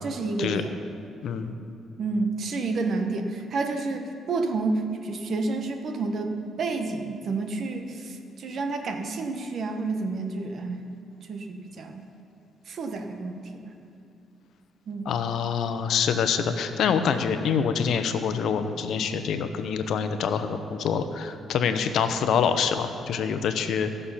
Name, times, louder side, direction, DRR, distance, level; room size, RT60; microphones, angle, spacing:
voice 1, 0.0-0.7 2.0-10.8 11.2-12.0 12.7-13.7 14.9-15.1, right 3 dB, 60° right, 5 dB, 1.2 m, -30 dB
voice 2, 1.2-1.5 15.1-23.9, left 7 dB, 70° left, 9 dB, 0.8 m, -26 dB
16.5 x 6.6 x 5.7 m, 2.5 s
cardioid pair, 90°, 0 cm